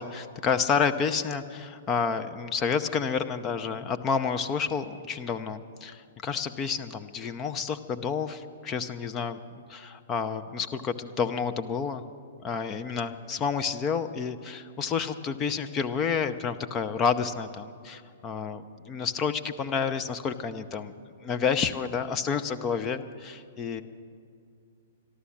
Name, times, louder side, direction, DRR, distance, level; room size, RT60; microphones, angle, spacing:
voice 1, 0.0-12.0 12.4-20.9 21.2-23.8, left 6 dB, 25° left, 9 dB, 0.6 m, -30 dB
13.0 x 12.5 x 7.3 m, 2.4 s
figure-of-eight pair, 115°, 0 cm